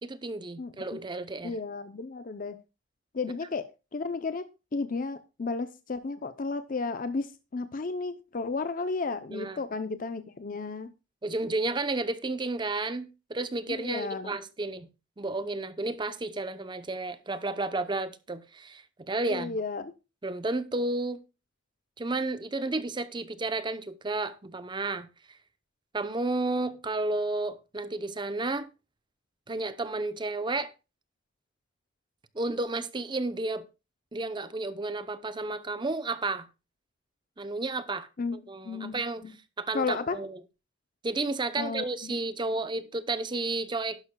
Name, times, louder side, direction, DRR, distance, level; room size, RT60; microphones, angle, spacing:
voice 1, 0.0-1.6 9.3-9.6 11.2-14.9 15.2-19.6 20.2-21.2 22.0-25.1 25.9-28.7 29.5-30.7 32.3-33.6 34.1-36.5 37.4-39.3 39.6-40.4 41.0-44.0, right 2 dB, 25° right, 0.7 m, -32 dB
voice 2, 0.6-1.0 1.4-2.6 3.1-10.9 13.7-14.4 19.3-19.9 38.2-38.4 38.6-39.3 39.7-40.2 41.6-42.2, left 4 dB, 45° left, 0.6 m, -33 dB
11.5 x 11.0 x 2.2 m
head